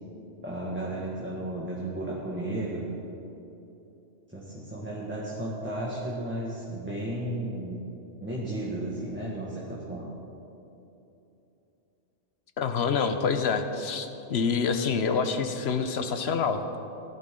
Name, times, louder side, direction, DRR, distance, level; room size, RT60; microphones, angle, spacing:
voice 1, 0.4-2.8 4.3-7.8 8.2-10.1, right 1 dB, 10° right, -7 dB, 1.7 m, -34 dB
voice 2, 12.6-16.6, left 5 dB, 65° left, 8 dB, 1.0 m, -27 dB
17.5 x 11.5 x 3.8 m, 2.9 s
omnidirectional pair, 1.2 m